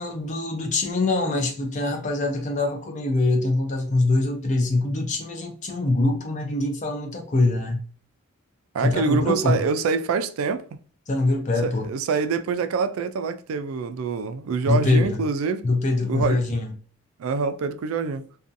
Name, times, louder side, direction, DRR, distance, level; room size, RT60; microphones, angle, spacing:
voice 1, 0.0-7.8 8.8-9.6 11.1-11.9 14.7-15.2 15.6-16.7, left 2 dB, 35° left, 0.5 m, -23 dB
voice 2, 8.7-10.7 11.6-15.7 16.1-16.4 17.2-18.2, right 5 dB, 80° right, 0.3 m, -25 dB
2.5 x 2.3 x 2.5 m
head